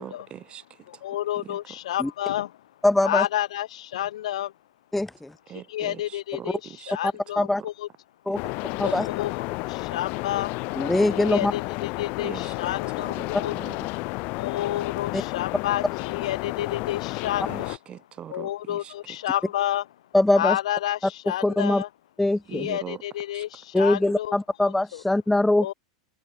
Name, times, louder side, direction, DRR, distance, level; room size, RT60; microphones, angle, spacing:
voice 1, 0.0-1.8 5.5-6.9 7.4-7.7 8.3-9.0 12.2-14.3 17.5-19.4 22.5-23.0 23.3-23.4, right 10 dB, 30° right, 7.0 m, -43 dB
voice 2, 0.9-2.6 3.0-4.5 5.7-6.6 6.9-7.9 8.8-10.6 11.1-13.5 14.3-17.8 18.3-19.9 20.3-21.9 22.5-24.3 24.9-25.0 25.6-25.7, left 13 dB, 80° left, 2.2 m, -30 dB
voice 3, 2.8-3.3 4.9-5.3 7.0-7.6 8.3-8.4 8.8-9.1 10.8-11.5 15.1-15.2 20.1-20.6 21.4-21.8 22.2-22.7 23.7-25.7, left 1 dB, 5° left, 0.4 m, -22 dB
sound 1, 8.3-17.8, left 28 dB, 50° left, 0.6 m, -31 dB
open air
supercardioid pair, 120°, 3 cm